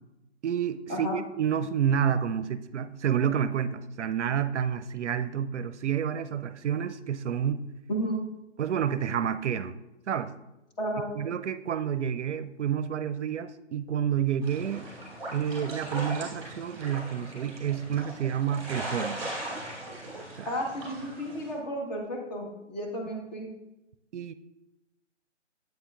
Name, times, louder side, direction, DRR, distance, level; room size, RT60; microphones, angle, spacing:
voice 1, 0.4-7.6 8.6-9.8 10.1-10.3 11.1-14.9 15.3-19.3 20.4-20.5 24.1-24.3, right 8 dB, 70° right, 13 dB, 0.5 m, -29 dB
voice 2, 7.9-8.2 10.8-11.1 20.5-23.5, equal, 35° left, 1 dB, 1.4 m, -32 dB
sound 1, 14.4-21.5, right 1 dB, 5° left, 2.3 m, -39 dB
8.7 x 7.8 x 2.4 m, 0.94 s
figure-of-eight pair, 140°, 36 cm